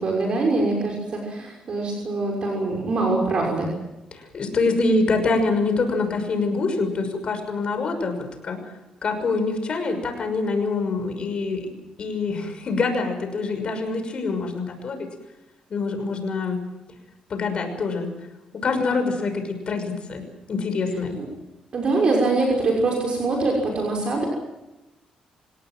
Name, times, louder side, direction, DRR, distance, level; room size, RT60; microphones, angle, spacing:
voice 1, 0.0-3.7 21.2-21.3 21.7-24.3, right 3 dB, 45° right, -1 dB, 6.1 m, -23 dB
voice 2, 4.1-8.2 8.4-8.6 9.0-11.7 12.0-15.1 15.7-16.6 17.3-18.1 18.5-20.2 20.5-21.2, left 3 dB, 45° left, 6 dB, 6.1 m, -25 dB
28.5 x 17.5 x 7.6 m, 1.0 s
cardioid pair, 120°, 2 cm